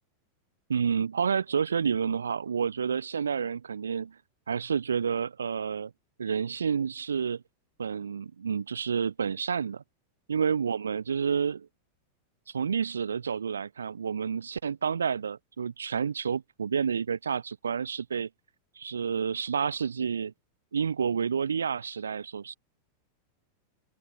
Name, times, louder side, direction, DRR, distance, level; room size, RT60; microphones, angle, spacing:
voice 1, 0.7-4.2 4.5-5.9 6.2-7.4 7.8-9.8 10.3-11.7 12.5-18.3 18.8-20.3 20.7-22.6, right 6 dB, 70° right, 0.8 m, -29 dB
open air
figure-of-eight pair, 90°, 0 cm